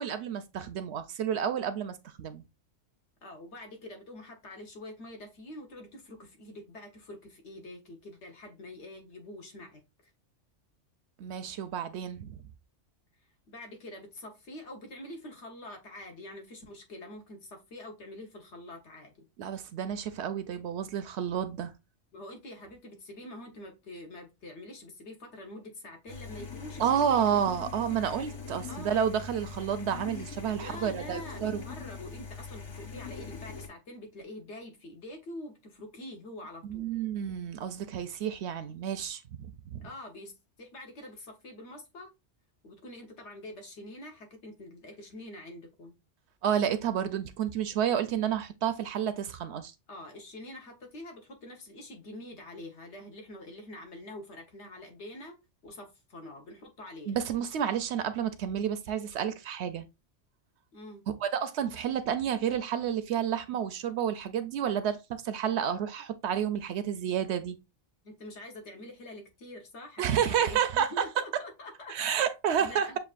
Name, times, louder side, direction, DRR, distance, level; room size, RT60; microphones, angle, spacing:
voice 1, 0.0-2.4 11.2-12.4 19.4-21.7 26.8-31.6 36.7-39.2 39.7-39.9 46.4-49.7 57.1-59.9 61.2-67.6 70.0-71.1 71.9-72.9, right 8 dB, 70° right, 0.8 m, -30 dB
voice 2, 3.2-9.8 13.5-19.2 22.1-27.4 28.7-29.0 30.6-36.8 39.8-40.3 40.6-42.1 42.6-45.9 49.9-55.4 55.6-57.2 60.7-61.0 68.0-72.1 72.6-73.0, left 1 dB, 65° left, 1.3 m, -45 dB
sound 1, 26.1-33.7, left 5 dB, 40° left, 0.4 m, -42 dB
6.8 x 2.5 x 2.4 m
omnidirectional pair, 1.3 m